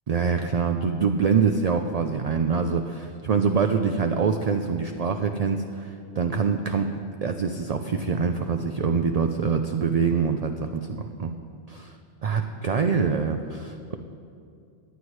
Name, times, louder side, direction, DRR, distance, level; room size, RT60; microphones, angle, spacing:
voice 1, 0.1-11.3 11.7-12.0 12.2-14.0, right 5 dB, 55° right, 6 dB, 0.4 m, -25 dB
17.5 x 9.8 x 3.2 m, 2.4 s
omnidirectional pair, 1.1 m